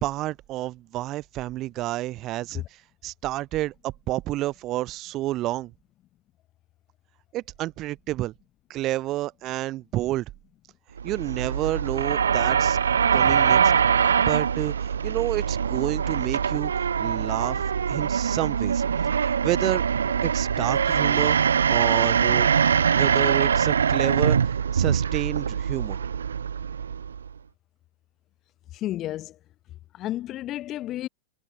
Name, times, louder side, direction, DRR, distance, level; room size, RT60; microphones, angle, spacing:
voice 1, 0.0-2.6 3.0-5.7 7.3-8.3 8.7-10.2 11.0-12.8 13.1-13.7 14.2-14.7 15.0-16.7 17.0-18.8 19.4-19.8 20.2-21.4 21.7-22.5 22.9-24.4 24.7-26.0, right 16 dB, 35° right, 1.2 m, -29 dB
sound 1, 11.0-27.3, right 7 dB, 70° right, 0.7 m, -23 dB
voice 2, 28.7-29.4 29.9-31.1, left 14 dB, 35° left, 1.4 m, -31 dB
figure-of-eight pair, 90°, 0 cm